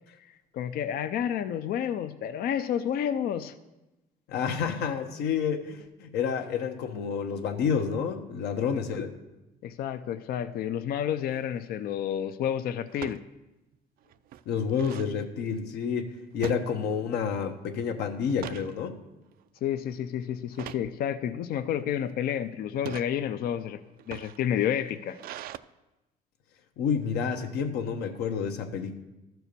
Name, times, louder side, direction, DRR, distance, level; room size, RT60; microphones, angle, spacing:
voice 1, 0.5-3.5 9.6-13.2 19.6-23.8 24.1-25.2, left 9 dB, 65° left, 12 dB, 0.5 m, -30 dB
voice 2, 4.3-9.1 14.5-19.0 26.8-28.9, left 6 dB, 80° left, 6 dB, 1.0 m, -29 dB
sound 1, 11.2-11.5 12.9-13.2 13.7-13.8 14.1-15.1 16.4-17.2 17.6-17.8 18.2-18.7 19.3-19.6 20.5-20.9 21.7-22.1 22.7-23.1 23.9-25.6, right 12 dB, 60° right, 0.4 m, -41 dB
13.0 x 4.6 x 6.8 m, 1.0 s
cardioid pair, 110°, 17 cm